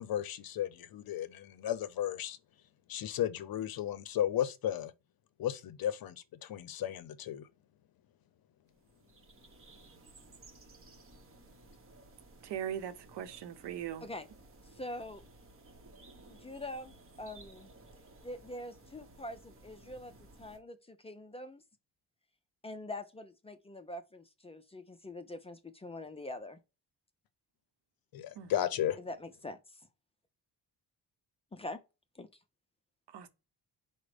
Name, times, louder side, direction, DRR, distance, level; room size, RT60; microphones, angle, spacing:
voice 1, 0.0-2.4 2.9-4.9 5.4-7.5 28.1-29.0, left 11 dB, 60° left, 0.6 m, -34 dB
sound 1, 8.7-20.6, right 2 dB, 30° right, 1.0 m, -57 dB
voice 2, 12.4-14.1 28.4-28.5 33.1-33.3, right 10 dB, 75° right, 0.8 m, -40 dB
voice 3, 14.6-15.2 16.3-17.7 18.2-21.6 22.6-26.6 29.0-29.8 31.5-31.8 32.1-32.3, left 1 dB, 15° left, 0.4 m, -44 dB
5.0 x 2.1 x 4.8 m
cardioid pair, 140°, 41 cm